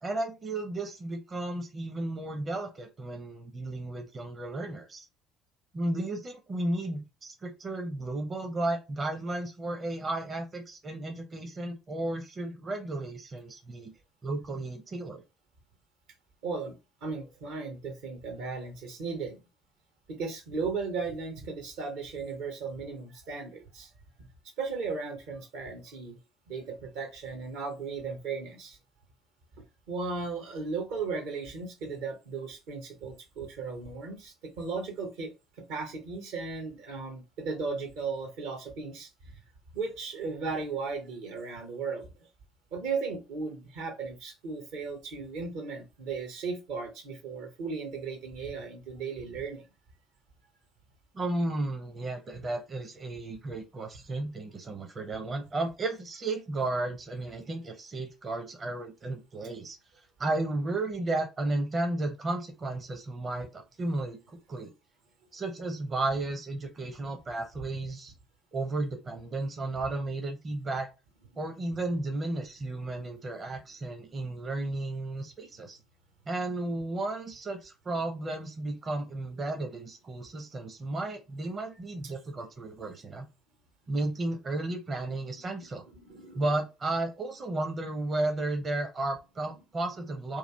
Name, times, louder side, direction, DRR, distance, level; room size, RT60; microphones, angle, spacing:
voice 1, 0.0-5.1 5.7-13.9 14.2-15.2 51.1-59.8 60.2-64.7 65.3-68.1 68.5-70.9 71.4-75.8 76.3-83.3 83.9-85.8 86.3-90.4, right 2 dB, 35° right, 0.7 m, -33 dB
voice 2, 16.4-19.4 20.1-23.9 24.6-26.2 26.5-28.8 29.9-39.3 39.7-42.1 42.7-49.7 73.0-73.1 86.1-86.4, right 4 dB, 65° right, 0.8 m, -36 dB
3.1 x 2.4 x 3.3 m
figure-of-eight pair, 50°, 0 cm